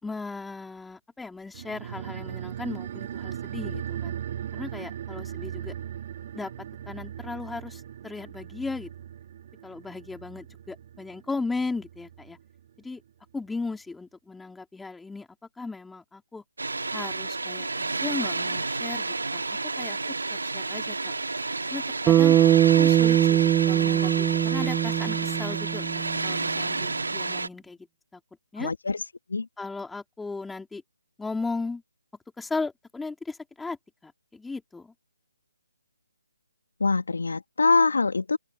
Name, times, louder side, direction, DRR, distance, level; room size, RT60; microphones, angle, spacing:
voice 1, 0.0-4.2 4.5-5.7 6.3-6.5 6.9-8.9 9.6-12.4 12.8-13.0 13.3-15.3 15.6-16.4 16.9-19.4 19.8-20.0 20.3-21.1 21.7-22.4 22.8-23.4 23.7-25.8 26.2-27.9 28.1-28.2 28.5-28.7 29.6-30.8 31.2-31.8 32.4-33.8 34.0-34.9, left 3 dB, 5° left, 4.2 m, -36 dB
sound 1, 1.5-12.4 12.7-12.8, right 10 dB, 40° right, 3.8 m, -38 dB
Water, 16.6-27.5, right 3 dB, 75° right, 2.3 m, -30 dB
Bass guitar, 22.1-26.5, right 12 dB, 15° right, 0.6 m, -21 dB
voice 2, 28.6-29.0 29.3-29.5 36.8-38.4, left 4 dB, 70° left, 1.8 m, -24 dB
open air
figure-of-eight pair, 145°, 0 cm